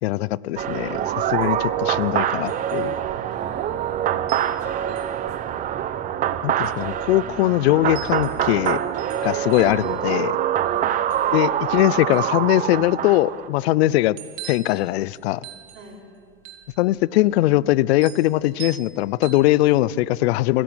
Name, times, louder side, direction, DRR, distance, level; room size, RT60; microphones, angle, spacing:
voice 1, 0.0-2.9 6.4-8.8 9.2-10.3 11.3-14.2 14.4-15.4 16.8-20.6, left 16 dB, 55° left, 21 dB, 0.6 m, -21 dB
sound 1, 0.6-13.5, right 10 dB, 20° right, 0.8 m, -25 dB
sound 2, 0.9-20.0, right 12 dB, 45° right, 2.8 m, -45 dB
voice 2, 3.3-4.1 4.6-5.7 10.6-10.9 15.7-16.1, right 2 dB, 75° right, 1 dB, 6.0 m, -45 dB
24.0 x 16.5 x 8.9 m, 2.2 s
supercardioid pair, 145°, 38 cm